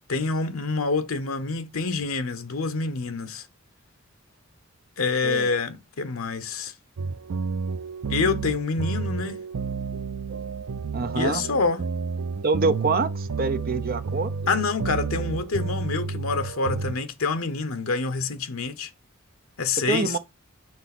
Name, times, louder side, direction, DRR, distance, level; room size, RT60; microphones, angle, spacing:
voice 1, 0.1-3.5 5.0-6.7 8.1-9.4 11.1-11.8 14.5-18.9 19.6-20.2, left 4 dB, 85° left, 0.9 m, -27 dB
sound 1, 7.0-17.1, right 4 dB, 80° right, 0.4 m, -31 dB
voice 2, 10.9-11.4 12.4-14.3 19.9-20.2, right 4 dB, 45° right, 0.8 m, -25 dB
6.2 x 4.1 x 6.0 m
head